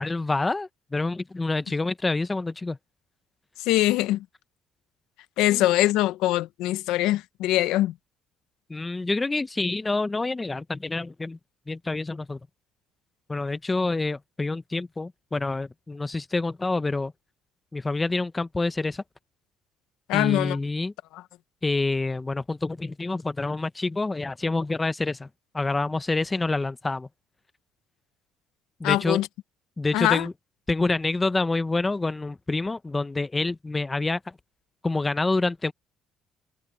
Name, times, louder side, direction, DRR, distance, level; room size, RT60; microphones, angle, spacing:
voice 1, 0.0-2.8 5.5-5.6 8.7-11.4 11.7-12.4 13.3-17.1 17.7-19.0 20.1-20.9 21.6-25.3 25.5-27.1 28.8-29.2 29.8-30.3 30.7-34.2 34.8-35.7, left 3 dB, 20° left, 0.8 m, -27 dB
voice 2, 3.6-4.2 5.4-7.9 20.1-20.6 21.1-21.2 28.8-29.3 29.9-30.3, left 15 dB, 85° left, 1.0 m, -23 dB
cardioid pair, 95°, 0 cm